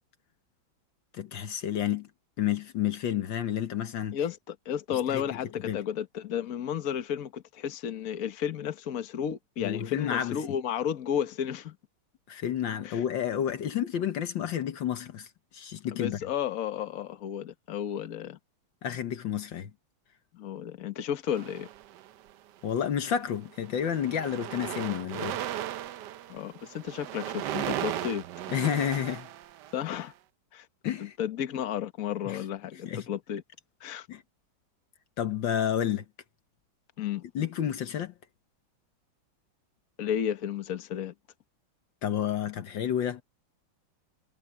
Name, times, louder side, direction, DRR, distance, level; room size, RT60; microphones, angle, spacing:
voice 1, 1.1-2.1 2.4-4.2 4.9-5.2 5.7-5.8 9.6-10.4 12.3-15.3 15.5-16.2 18.8-19.7 22.6-25.4 28.5-29.3 30.8-31.1 32.3-32.4 32.9-33.1 34.1-34.2 35.2-36.1 37.4-38.1 42.0-43.2, left 9 dB, 70° left, 1.7 m, -30 dB
voice 2, 4.1-11.8 12.8-13.0 15.9-18.4 20.3-21.7 26.3-28.2 29.7-30.1 30.5-30.7 31.0-33.4 33.8-34.1 37.0-37.2 40.0-41.1, left 9 dB, 50° left, 1.5 m, -33 dB
sound 1, 21.3-22.3 23.0-23.3 23.5-30.0, right 12 dB, 70° right, 1.1 m, -37 dB
omnidirectional pair, 2.2 m